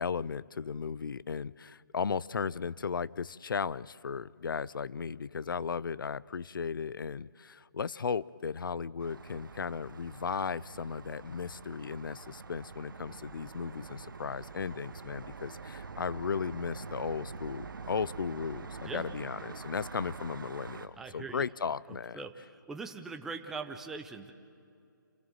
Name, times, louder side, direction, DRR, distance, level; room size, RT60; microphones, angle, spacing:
voice 1, 0.0-22.2, left 6 dB, 75° left, 21 dB, 0.5 m, -36 dB
sound 1, 9.0-20.9, right 4 dB, 75° right, 1.3 m, -45 dB
voice 2, 21.0-21.4 21.9-24.3, right 4 dB, 5° right, 5 dB, 0.5 m, -41 dB
27.5 x 15.5 x 7.7 m, 2.4 s
hypercardioid pair, 165°, 11 cm